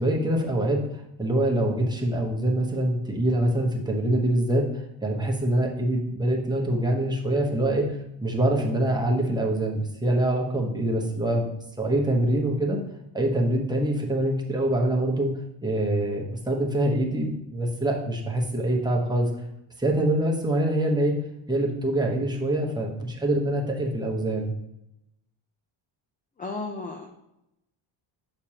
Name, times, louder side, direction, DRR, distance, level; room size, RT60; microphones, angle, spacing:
voice 1, 0.0-12.8 13.1-15.3 15.6-19.3 19.8-21.1 21.5-24.5, right 1 dB, 10° right, -1 dB, 1.0 m, -25 dB
voice 2, 26.4-27.1, left 3 dB, 20° left, 2 dB, 0.5 m, -33 dB
6.6 x 6.1 x 2.9 m, 0.84 s
cardioid pair, 140°, 49 cm